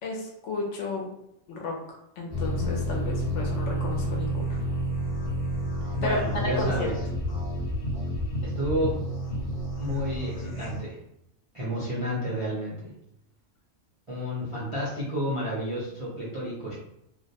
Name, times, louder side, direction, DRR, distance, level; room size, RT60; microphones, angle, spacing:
voice 1, 0.0-1.1 1.5-1.7 2.2-4.6 6.0-6.9, left 2 dB, 70° left, 0 dB, 0.9 m, -32 dB
sound 1, 2.3-10.8, equal, 35° left, 0.8 m, -30 dB
voice 2, 6.0-7.0 8.4-9.0 9.8-11.0 11.5-12.9 14.1-16.7, equal, 40° right, -9 dB, 0.4 m, -30 dB
2.5 x 2.1 x 2.7 m, 0.78 s
omnidirectional pair, 1.4 m